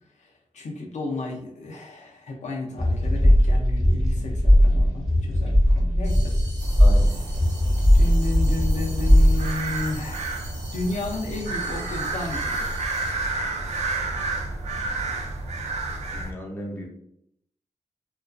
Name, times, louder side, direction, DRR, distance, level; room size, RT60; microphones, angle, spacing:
voice 1, 0.2-6.4 7.9-10.4 10.7-12.8, left 2 dB, 70° left, 1 dB, 0.5 m, -33 dB
sound 1, 2.8-9.5, equal, ahead, 1.0 m, -19 dB
sound 2, 6.0-13.1, right 1 dB, 30° right, 0.7 m, -43 dB
sound 3, 6.6-16.3, right 2 dB, 60° right, 0.4 m, -31 dB
voice 2, 6.8-7.1 16.1-16.9, equal, 15° left, -1 dB, 0.6 m, -35 dB
2.4 x 2.2 x 2.3 m, 0.73 s
wide cardioid pair, 125°, 13 cm